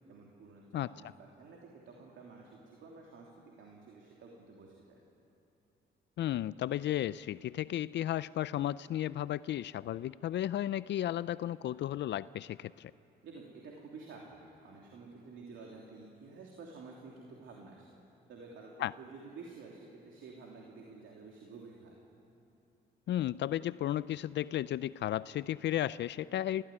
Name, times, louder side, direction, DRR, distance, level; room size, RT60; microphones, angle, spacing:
voice 1, 0.1-3.3 3.6-5.0 13.2-17.9 18.3-21.9, right 4 dB, 75° right, -1 dB, 3.1 m, -51 dB
voice 2, 6.2-12.9 18.8-18.9 23.1-26.6, left 12 dB, 65° left, 17 dB, 0.4 m, -34 dB
29.0 x 14.5 x 9.9 m, 3.0 s
cardioid pair, 90°, 20 cm